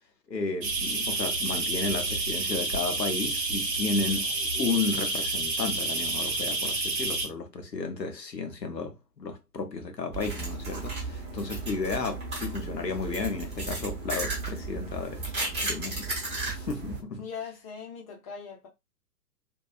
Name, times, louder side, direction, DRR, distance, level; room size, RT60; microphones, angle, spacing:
voice 1, 0.3-15.3 15.6-16.1 16.5-17.3, left 4 dB, 85° left, 0.8 m, -33 dB
sound 1, 0.6-7.3, right 2 dB, 85° right, 0.8 m, -29 dB
sound 2, 10.1-17.0, right 3 dB, 15° right, 0.9 m, -34 dB
voice 2, 17.2-18.7, left 6 dB, 25° left, 0.7 m, -40 dB
2.7 x 2.3 x 2.3 m
figure-of-eight pair, 115°, 48 cm